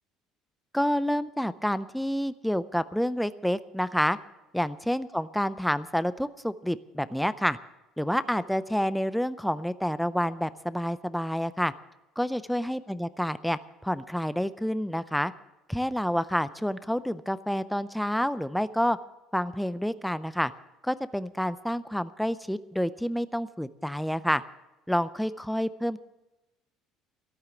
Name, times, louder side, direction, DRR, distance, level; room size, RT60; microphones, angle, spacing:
voice 1, 0.7-4.2 4.5-7.6 8.0-11.7 12.2-15.3 15.7-19.0 19.3-20.5 20.8-24.4 24.9-26.0, equal, ahead, 14 dB, 0.4 m, -28 dB
13.5 x 13.0 x 7.0 m, 1.0 s
cardioid pair, 160°, 0 cm